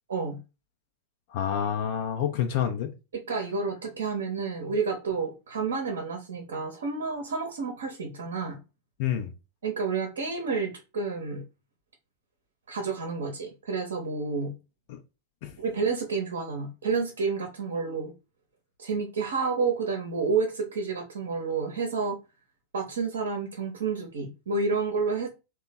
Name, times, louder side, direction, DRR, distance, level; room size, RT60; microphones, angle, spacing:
voice 1, 1.3-2.9 9.0-9.3 14.9-15.0 15.4-15.6, left 9 dB, 50° left, 0.5 m, -28 dB
voice 2, 3.3-8.6 9.6-11.4 12.7-14.5 15.6-18.1 18.8-22.2 22.7-25.3, right 4 dB, 65° right, 0.8 m, -30 dB
3.0 x 2.2 x 4.1 m
figure-of-eight pair, 90°, 0 cm